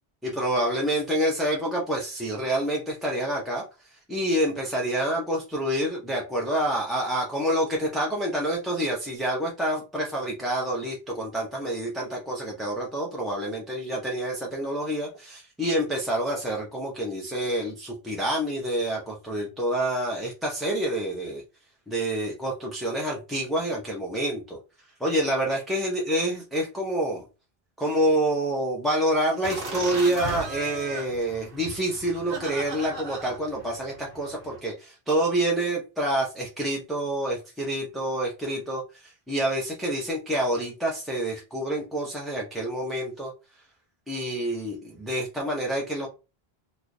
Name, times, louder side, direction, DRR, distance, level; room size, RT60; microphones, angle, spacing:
voice 1, 0.2-3.6 4.1-21.4 21.9-24.6 25.0-27.3 27.8-43.3 44.1-46.1, right 1 dB, ahead, -4 dB, 0.6 m, -27 dB
sound 1, 29.4-34.6, right 2 dB, 60° right, 1.1 m, -37 dB
3.1 x 2.3 x 3.9 m, 0.31 s
omnidirectional pair, 1.0 m